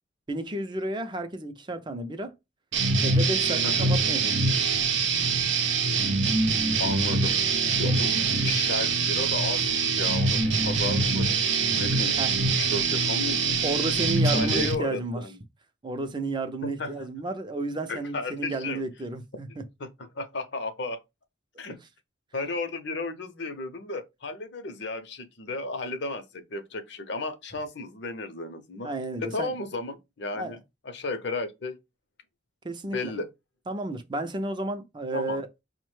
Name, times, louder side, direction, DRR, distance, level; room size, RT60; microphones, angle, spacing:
voice 1, 0.3-2.3 3.0-4.3 7.8-8.1 12.2-12.4 13.6-15.2 15.8-19.6 28.8-29.5 30.3-30.6 32.6-33.1 33.7-35.5, right 2 dB, 25° right, 0.4 m, -32 dB
sound 1, 2.7-14.8, right 4 dB, 70° right, 0.6 m, -24 dB
voice 2, 6.8-7.4 7.8-11.4 11.7-12.2 12.5-13.7 14.3-15.4 16.6-17.1 17.9-18.8 19.5-21.0 21.6-21.8 22.3-28.9 29.2-30.6 30.8-31.8 32.9-33.3 35.1-35.4, left 2 dB, 60° left, 0.6 m, -34 dB
5.4 x 2.1 x 3.1 m
head